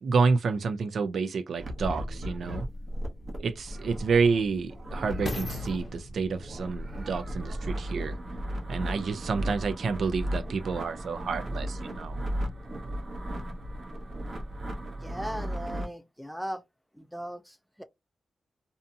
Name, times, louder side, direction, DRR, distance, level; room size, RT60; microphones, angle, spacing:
voice 1, 0.0-2.7 3.4-8.1 8.7-12.2, right 4 dB, 75° right, 0.4 m, -29 dB
sound 1, 1.6-15.9, equal, 45° right, 0.7 m, -35 dB
sound 2, 2.2-2.3 3.0-8.3 9.0-9.1, left 1 dB, 40° left, 0.7 m, -41 dB
voice 2, 14.9-16.6 16.9-17.8, equal, ahead, 0.3 m, -38 dB
2.7 x 2.6 x 2.3 m
wide cardioid pair, 130°, 0 cm